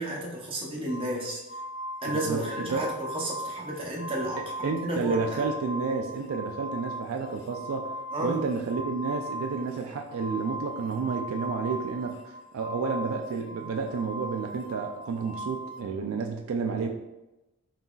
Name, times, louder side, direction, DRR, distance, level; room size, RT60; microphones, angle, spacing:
voice 1, 0.0-1.4 2.0-5.5 8.1-8.4, right 1 dB, 25° right, -3 dB, 0.7 m, -32 dB
sound 1, 0.9-15.8, right 1 dB, 55° left, 0.4 m, -39 dB
voice 2, 2.1-2.4 2.7-2.9 4.6-7.9 8.2-16.9, right 5 dB, 70° right, 3 dB, 0.4 m, -31 dB
4.0 x 3.9 x 2.3 m, 0.99 s
head